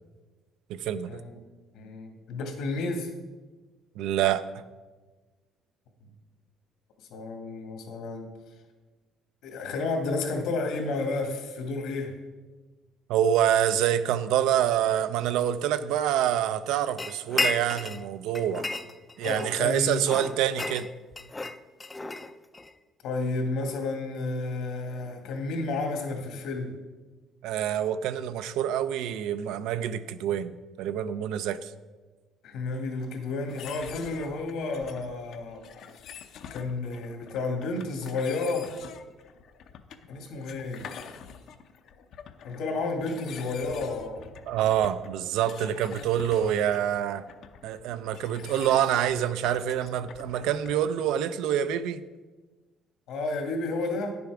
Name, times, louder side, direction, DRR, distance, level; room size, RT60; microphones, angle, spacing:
voice 1, 0.7-1.1 4.0-4.6 13.1-18.7 19.2-20.9 27.4-31.7 44.5-47.2 47.6-52.0, right 10 dB, 80° right, 12 dB, 0.5 m, -26 dB
voice 2, 1.7-3.1 7.1-8.3 9.4-12.2 19.2-20.0 23.0-26.7 32.4-35.6 36.5-38.7 40.1-40.9 42.4-44.3 53.1-54.1, left 3 dB, 75° left, 3 dB, 2.0 m, -31 dB
sound 1, 17.0-18.0 18.3-19.6 20.0-22.7, left 2 dB, 15° left, 0.4 m, -32 dB
sound 2, 33.5-50.9, left 7 dB, 60° left, 0.6 m, -46 dB
9.9 x 7.0 x 4.9 m, 1.3 s
cardioid pair, 140°, 0 cm